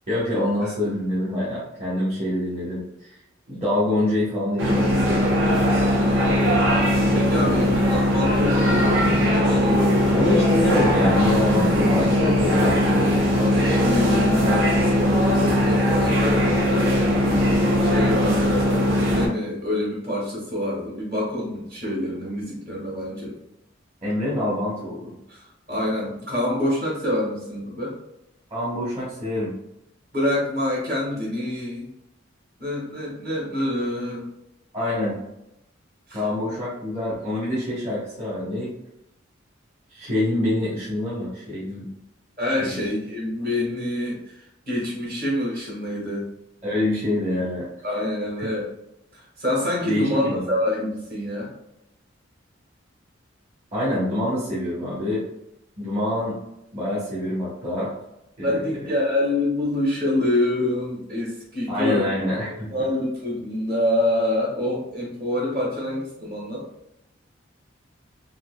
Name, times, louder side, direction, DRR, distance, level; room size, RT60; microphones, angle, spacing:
voice 1, 0.1-3.1 3.5-5.4 7.4-7.7 10.1-12.8 24.0-25.1 28.5-29.5 34.7-35.2 36.1-38.7 39.9-41.9 42.6-42.7 46.6-47.7 48.4-48.5 49.9-50.5 53.7-55.3 55.8-56.4 56.7-57.9 58.4-58.6 61.7-62.7, left 1 dB, 35° right, -9 dB, 1.0 m, -25 dB
sound 1, 4.6-19.3, equal, 80° right, 1.0 m, -19 dB
voice 2, 6.0-6.4 7.1-10.5 13.3-17.2 17.8-23.3 25.3-25.4 25.7-27.9 30.1-31.9 32.6-34.3 36.1-36.2 42.4-46.3 47.8-48.7 49.1-51.5 58.4-62.1 62.7-66.6, left 1 dB, 50° right, -4 dB, 1.4 m, -26 dB
3.8 x 2.9 x 2.2 m, 0.83 s
head